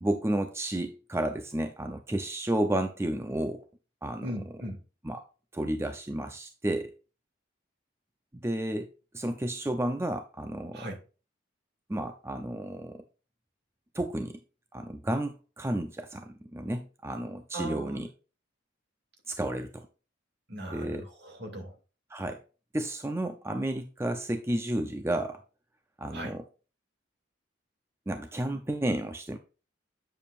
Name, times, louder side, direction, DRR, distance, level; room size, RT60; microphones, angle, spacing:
voice 1, 0.0-3.6 4.0-4.3 5.0-5.2 5.5-6.9 8.3-8.9 9.1-10.8 11.9-13.0 13.9-14.4 14.7-18.1 19.3-19.9 20.7-21.1 22.1-22.4 22.7-25.4 26.0-26.4 28.1-29.4, right 1 dB, 15° right, 0.5 m, -32 dB
voice 2, 4.2-4.8 10.7-11.0 17.5-18.1 20.5-21.8 26.1-26.4, right 1 dB, 55° right, 2.3 m, -38 dB
8.8 x 7.2 x 2.4 m
head